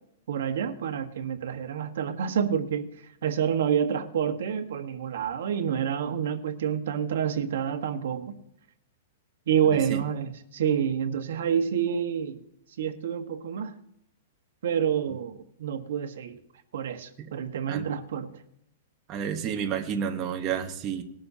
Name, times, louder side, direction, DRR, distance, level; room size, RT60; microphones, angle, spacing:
voice 1, 0.3-8.3 9.5-12.4 12.8-13.7 14.6-16.4 16.7-18.4, right 8 dB, 70° right, 1.3 m, -28 dB
voice 2, 19.1-21.0, right 8 dB, 25° right, 1.0 m, -30 dB
19.5 x 12.0 x 2.8 m
hypercardioid pair, 165°, 0 cm